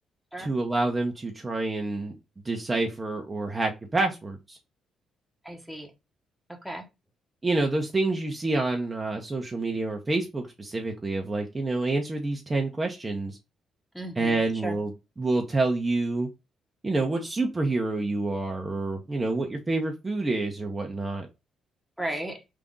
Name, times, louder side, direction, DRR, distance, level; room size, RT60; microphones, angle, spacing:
voice 1, 0.4-2.2 2.4-4.6 7.4-13.4 14.2-14.9 15.2-16.3 16.8-21.3, right 2 dB, 20° right, 2 dB, 0.8 m, -28 dB
voice 2, 5.4-5.9 6.5-6.8 13.9-14.8 22.0-22.4, right 1 dB, ahead, 2 dB, 1.1 m, -35 dB
3.6 x 2.6 x 3.8 m, 0.25 s
cardioid pair, 90°, 0 cm